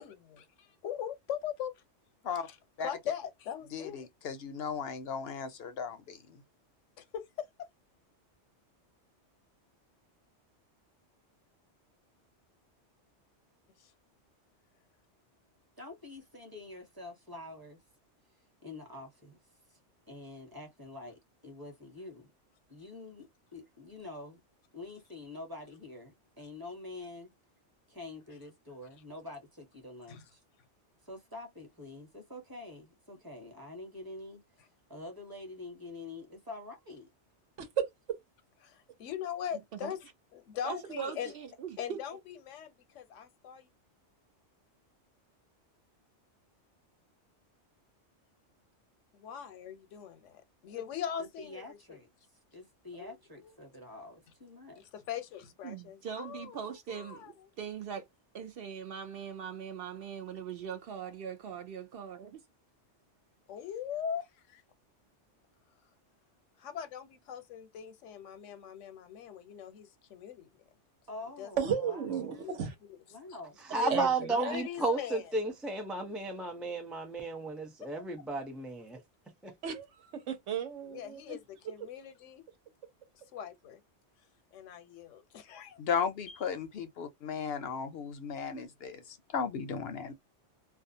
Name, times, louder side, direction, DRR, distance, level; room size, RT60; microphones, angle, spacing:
voice 1, 0.0-1.8 2.3-4.1 7.0-7.5 13.8-13.9 30.1-30.3 38.6-40.0 40.3-41.3 41.8-43.7 49.1-52.0 52.9-53.5 54.8-57.5 63.5-64.6 66.6-70.5 71.4-71.8 72.4-72.6 73.7-75.2 77.8-77.9 80.9-81.4 81.7-82.4 83.1-83.8 84.5-85.8, left 9 dB, 85° left, 1.0 m, -41 dB
voice 2, 3.7-6.2 85.8-90.1, left 6 dB, 65° left, 0.7 m, -35 dB
voice 3, 15.8-17.8 18.6-19.4 19.7-19.8 20.1-22.3 22.7-24.4 24.7-27.3 27.9-30.4 31.0-37.1 50.7-50.9 51.4-52.1 52.5-54.8 71.1-72.5 73.1-73.5, left 2 dB, 20° right, 1.0 m, -46 dB
voice 4, 40.6-42.0 55.6-58.1 58.3-62.4, right 7 dB, 60° right, 0.7 m, -41 dB
voice 5, 71.6-72.7 73.9-74.6 79.6-81.4, right 8 dB, 85° right, 1.1 m, -34 dB
voice 6, 73.7-79.0 79.4-79.5, right 3 dB, ahead, 0.3 m, -33 dB
2.4 x 2.3 x 2.6 m
omnidirectional pair, 1.2 m